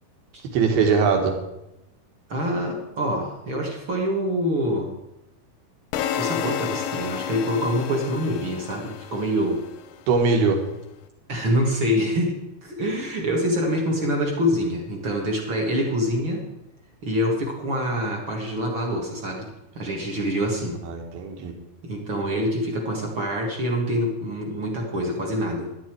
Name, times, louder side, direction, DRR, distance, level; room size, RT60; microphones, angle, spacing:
voice 1, 0.5-1.4 10.1-10.6 20.8-21.5, right 5 dB, 75° right, 3 dB, 3.6 m, -21 dB
voice 2, 2.3-4.9 6.2-9.6 11.3-16.5 17.0-20.8 21.8-25.7, equal, 40° right, 0 dB, 2.0 m, -25 dB
sound 1, 5.9-10.0, left 9 dB, 80° left, 2.1 m, -31 dB
12.0 x 11.5 x 4.7 m, 0.89 s
omnidirectional pair, 4.5 m